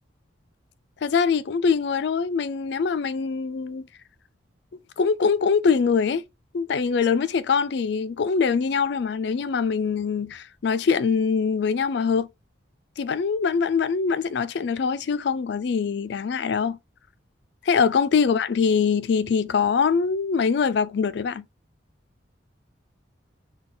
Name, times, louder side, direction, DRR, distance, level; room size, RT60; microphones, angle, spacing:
voice 1, 1.0-3.9 5.0-6.2 6.5-12.3 13.0-16.8 17.6-21.5, left 5 dB, 60° left, 0.3 m, -23 dB
3.8 x 2.3 x 3.7 m
head